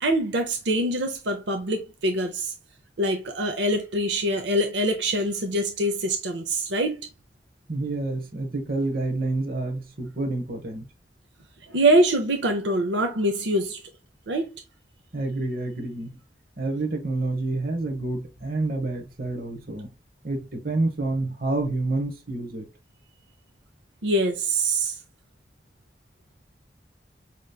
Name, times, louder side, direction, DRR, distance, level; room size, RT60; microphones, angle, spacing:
voice 1, 0.0-2.5 3.0-7.1 11.7-13.8 14.3-14.5 24.0-24.9, right 1 dB, 90° right, 0.7 m, -24 dB
voice 2, 7.7-10.9 15.1-16.2 16.6-19.9 20.2-22.7, right 2 dB, 55° right, 1.1 m, -28 dB
5.1 x 3.0 x 2.3 m
head